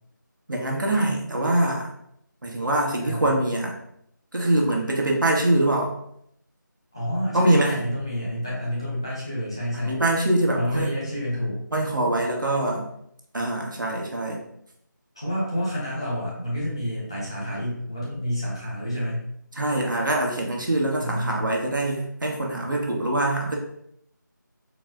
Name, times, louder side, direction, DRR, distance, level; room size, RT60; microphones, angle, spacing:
voice 1, 0.5-1.9 2.4-3.7 4.3-5.9 7.3-7.8 9.7-11.0 11.7-12.9 13.3-14.4 19.6-23.6, right 1 dB, 75° right, 0 dB, 1.1 m, -23 dB
voice 2, 3.0-3.4 6.9-10.0 10.5-11.6 15.1-19.2 21.0-21.5, equal, 15° left, -8 dB, 0.6 m, -29 dB
4.0 x 2.1 x 3.6 m, 0.73 s
figure-of-eight pair, 175°, 11 cm